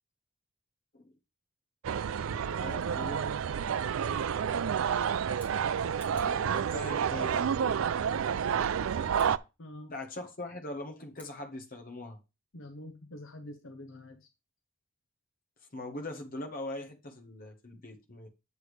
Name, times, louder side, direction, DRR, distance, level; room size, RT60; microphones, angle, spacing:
sound 1, 1.8-9.4, right 7 dB, 65° right, 0.4 m, -30 dB
voice 1, 2.1-3.3 6.1-7.5 9.9-12.2 15.7-18.3, left 1 dB, 40° left, 1.2 m, -41 dB
Scissors, 5.2-6.4 9.1-9.3 11.1-11.4, equal, 5° left, 2.8 m, -56 dB
voice 2, 9.6-9.9 12.5-14.3, left 1 dB, 60° left, 0.9 m, -46 dB
8.2 x 7.0 x 3.3 m
head